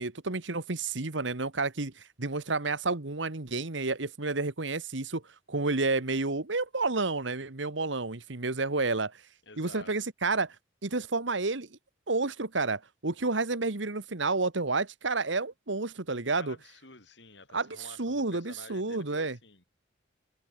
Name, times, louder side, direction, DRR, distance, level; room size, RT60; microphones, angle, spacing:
voice 1, 0.0-5.2 5.5-9.2 9.6-10.5 10.8-11.8 12.1-16.6 17.5-19.4, right 3 dB, 80° right, 1.6 m, -30 dB
voice 2, 9.4-9.9 16.1-19.7, left 3 dB, 70° left, 6.7 m, -51 dB
head